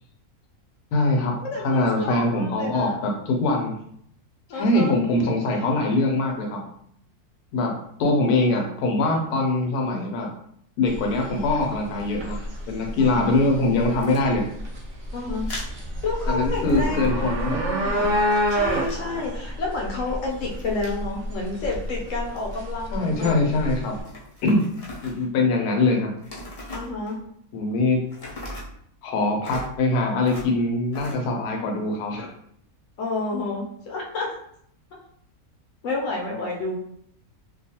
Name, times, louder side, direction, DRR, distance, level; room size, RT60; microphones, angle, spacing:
voice 1, 0.9-1.3 1.6-3.7 4.5-6.6 7.5-7.7 8.0-10.3 10.8-12.4 12.7-14.5 16.3-17.6 22.9-24.0 24.4-24.6 25.0-26.1 27.5-28.0 29.0-32.3, left 2 dB, 85° left, 1 dB, 1.1 m, -23 dB
voice 2, 1.4-3.0 4.5-5.0 9.1-9.2 13.1-13.3 15.1-15.5 16.0-18.2 18.5-23.4 26.7-27.2 33.0-34.4 35.8-36.8, left 3 dB, 65° left, -1 dB, 0.9 m, -30 dB
sound 1, 10.9-24.0, equal, 50° right, 0.9 m, -28 dB
sound 2, 14.0-14.2 15.5-15.7 16.5-17.5 17.8-19.2 20.3-21.0 21.4-22.5 23.8-25.3 26.2-27.3 28.1-28.7 29.4-29.7 30.2-30.5 30.9-31.1, left 1 dB, 45° left, 0.5 m, -39 dB
2.6 x 2.3 x 2.7 m, 0.69 s
omnidirectional pair, 1.6 m